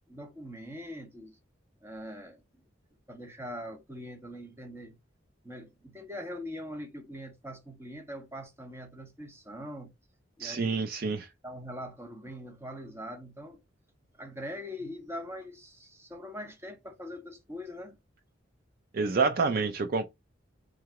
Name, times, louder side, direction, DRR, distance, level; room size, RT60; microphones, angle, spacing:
voice 1, 0.1-1.4 1.8-2.4 3.1-4.9 5.4-9.9 10.4-10.7 11.4-13.6 14.2-18.0, equal, 15° right, 0.8 m, -42 dB
voice 2, 10.4-11.3 18.9-20.1, right 4 dB, 45° right, 0.4 m, -28 dB
3.8 x 2.9 x 4.6 m
head